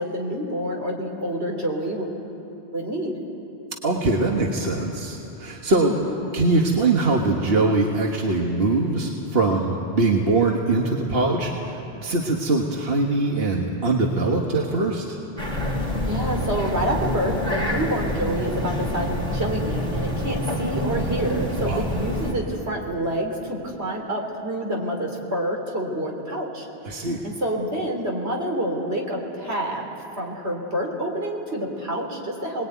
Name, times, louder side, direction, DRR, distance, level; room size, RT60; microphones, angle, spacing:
voice 1, 0.0-2.2 2.7-3.1 5.8-6.0 16.1-26.7 27.2-29.9 30.2-32.7, right 1 dB, 85° right, 0 dB, 3.7 m, -27 dB
voice 2, 3.8-5.9 6.3-15.2 21.6-21.9 26.8-27.2, right 2 dB, 65° right, 0 dB, 1.8 m, -22 dB
sound 1, 15.4-22.3, left 1 dB, 35° right, 4.1 m, -27 dB
25.5 x 20.5 x 9.4 m, 2.9 s
omnidirectional pair, 1.1 m